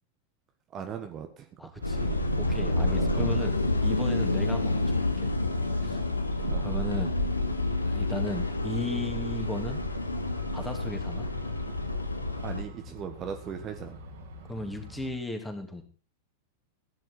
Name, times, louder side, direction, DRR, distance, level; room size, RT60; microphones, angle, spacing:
voice 1, 0.7-1.6 2.9-3.5 6.5-6.6 12.4-14.1, right 8 dB, 30° right, 6 dB, 1.5 m, -39 dB
voice 2, 1.6-5.3 5.8-6.0 6.6-7.2 7.8-9.8 10.5-11.3 14.5-15.8, left 1 dB, 5° left, 4 dB, 3.0 m, -36 dB
sound 1, 1.8-12.6, left 2 dB, 80° left, 1.7 m, -28 dB
Truck, 1.8-15.1, left 1 dB, 60° right, 2.9 m, -45 dB
16.5 x 10.5 x 4.3 m, 0.33 s
figure-of-eight pair, 90°, 0 cm